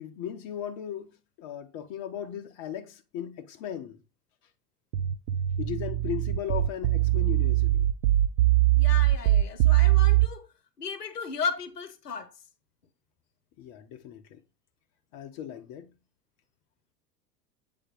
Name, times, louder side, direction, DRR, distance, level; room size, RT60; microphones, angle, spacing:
voice 1, 0.0-4.0 5.6-7.9 13.6-14.4 15.1-15.9, left 10 dB, 35° left, 0.8 m, -37 dB
sound 1, 4.9-10.3, right 15 dB, 50° right, 0.5 m, -22 dB
voice 2, 8.7-10.5 10.8-12.3, left 5 dB, 75° left, 0.9 m, -35 dB
7.9 x 3.4 x 3.8 m
figure-of-eight pair, 85°, 47 cm